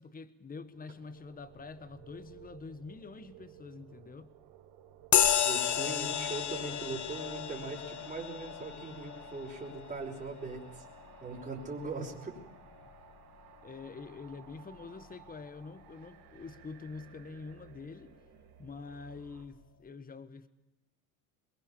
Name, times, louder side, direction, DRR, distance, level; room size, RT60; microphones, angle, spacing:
voice 1, 0.0-4.3 13.6-18.1 18.6-20.5, left 4 dB, 20° left, 13 dB, 1.5 m, -46 dB
sound 1, 0.6-19.5, right 11 dB, 70° right, 4.0 m, -56 dB
sound 2, 5.1-13.0, left 9 dB, 40° left, 1.6 m, -33 dB
voice 2, 5.4-10.8 11.2-12.4, right 3 dB, 15° right, -1 dB, 5.7 m, -40 dB
22.5 x 22.0 x 7.3 m, 0.95 s
hypercardioid pair, 85°, 43 cm